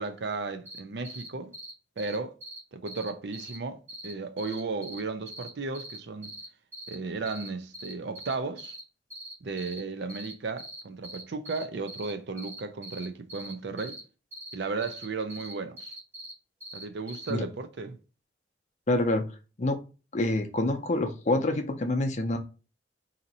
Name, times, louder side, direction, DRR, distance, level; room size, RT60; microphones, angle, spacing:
voice 1, 0.0-1.5 2.0-2.3 2.7-6.3 6.9-8.7 9.4-14.0 14.5-15.9 16.7-18.0, right 3 dB, 65° right, 0.5 m, -35 dB
sound 1, 0.6-0.8 1.0-1.3 1.5-1.7 2.0-2.2 2.4-2.6 2.9-3.6 3.9-4.1 4.4-5.0 5.3-6.5 6.7-6.9 7.3-7.5 7.7-8.8 9.1-9.8 10.1-10.3 10.6-12.1 12.4-14.0 14.3-14.5 14.8-15.0 15.3-16.3 16.6-17.3, equal, 10° right, 0.8 m, -42 dB
voice 2, 18.9-19.2 19.6-19.8 20.1-22.4, left 2 dB, 40° left, 0.6 m, -26 dB
2.8 x 2.6 x 4.0 m
head